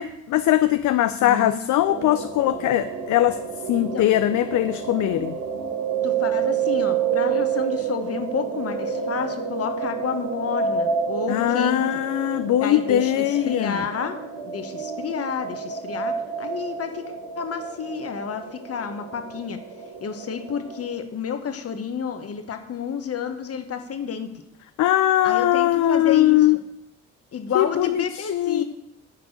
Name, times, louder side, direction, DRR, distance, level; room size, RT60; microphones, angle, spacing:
voice 1, 0.0-3.4 3.7-5.3 11.3-13.8 24.8-26.6 27.5-28.0 28.3-28.6, left 13 dB, 70° left, 11 dB, 0.5 m, -20 dB
voice 2, 1.2-1.6 3.8-4.0 6.0-12.0 12.6-14.2 14.4-19.6 20.0-24.3 25.2-26.5 27.3-28.6, left 7 dB, 50° left, 7 dB, 1.4 m, -30 dB
sound 1, 1.8-20.9, right 7 dB, 85° right, 1.8 m, -29 dB
10.0 x 4.7 x 7.9 m, 0.78 s
cardioid pair, 90°, 30 cm